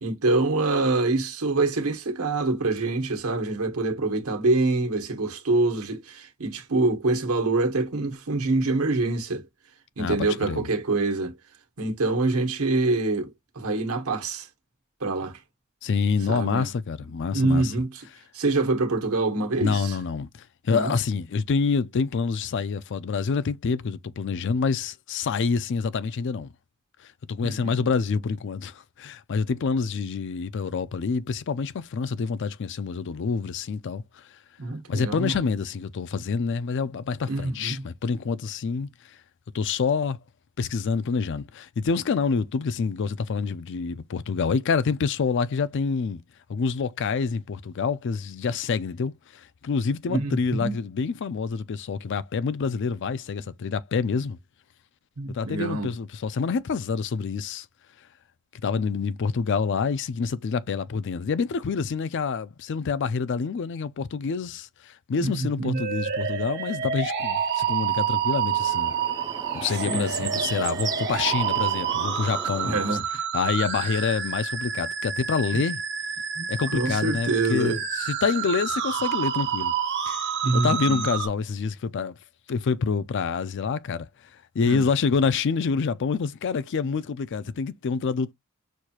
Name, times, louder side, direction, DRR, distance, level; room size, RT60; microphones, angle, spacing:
voice 1, 0.0-9.4 10.0-11.4 11.8-14.5 15.0-15.4 16.3-16.7 17.3-18.0 18.3-20.0 20.7-20.9 27.4-27.8 34.6-35.5 37.2-37.9 50.1-50.8 55.2-55.9 65.2-65.8 69.9-70.3 72.6-73.0 75.5-75.6 76.4-76.5 76.7-77.8 80.4-81.1 84.7-84.8, right 2 dB, 80° right, 1.2 m, -25 dB
voice 2, 10.0-10.7 15.8-17.7 19.6-20.3 20.6-26.5 27.3-34.0 34.9-38.9 39.5-40.2 40.6-46.2 46.5-49.1 49.6-54.4 55.3-57.7 58.6-68.9 69.5-73.0 73.3-75.8 76.5-79.7 80.1-80.2 80.5-82.2 82.5-84.1 84.5-88.3, left 5 dB, 55° left, 0.4 m, -27 dB
sound 1, 65.7-81.3, right 8 dB, 55° right, 0.8 m, -28 dB
sound 2, 68.2-73.0, right 5 dB, 15° right, 0.3 m, -36 dB
6.3 x 2.4 x 2.8 m
head